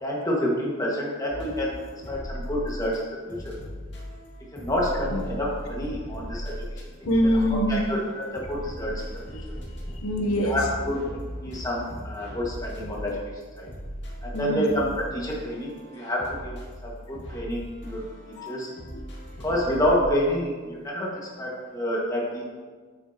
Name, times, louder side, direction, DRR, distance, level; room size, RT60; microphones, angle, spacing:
voice 1, 0.0-1.8 2.1-3.6 4.5-6.5 7.3-7.4 7.7-9.4 10.3-13.2 13.6-13.7 14.2-18.0 18.5-18.7 19.4-21.1 21.4-22.4, equal, 15° left, -4 dB, 1.7 m, -28 dB
sound 1, 1.3-3.0 3.3-20.0, equal, 55° left, 2.3 m, -38 dB
voice 2, 7.1-7.8 9.4-9.5 10.0-10.6 14.3-14.6 18.4-18.6 18.9-19.0, equal, 85° left, 2 dB, 1.0 m, -24 dB
9.8 x 8.4 x 2.9 m, 1.5 s
head